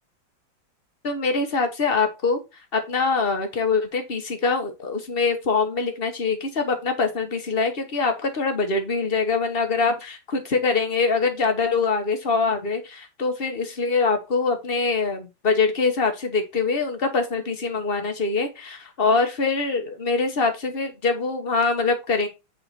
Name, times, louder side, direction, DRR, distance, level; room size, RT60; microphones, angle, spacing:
voice 1, 1.0-2.4 2.7-22.3, left 4 dB, 35° left, 5 dB, 1.3 m, -24 dB
8.5 x 3.8 x 4.2 m, 0.25 s
omnidirectional pair, 2.2 m